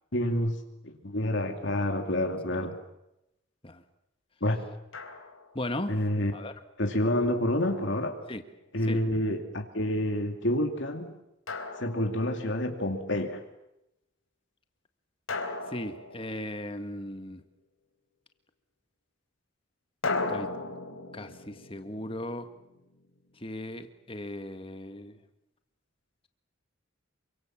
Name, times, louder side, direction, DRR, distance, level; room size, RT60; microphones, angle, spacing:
voice 1, 0.1-0.6 0.8-2.7 4.4-4.6 5.9-6.3 6.8-8.1 8.7-11.1 11.8-13.4, left 1 dB, 60° left, 4 dB, 2.7 m, -28 dB
Drum, 4.9-5.6 7.6-8.7 11.5-12.6 15.3-16.9 20.0-23.0, left 3 dB, 80° left, 3.9 m, -37 dB
voice 2, 5.6-5.9 6.3-6.5 8.3-8.4 8.9-9.0 15.7-17.4 20.3-20.5 21.1-22.5 23.4-25.2, left 1 dB, 25° left, 8 dB, 1.7 m, -37 dB
28.0 x 24.5 x 7.5 m, 0.87 s
head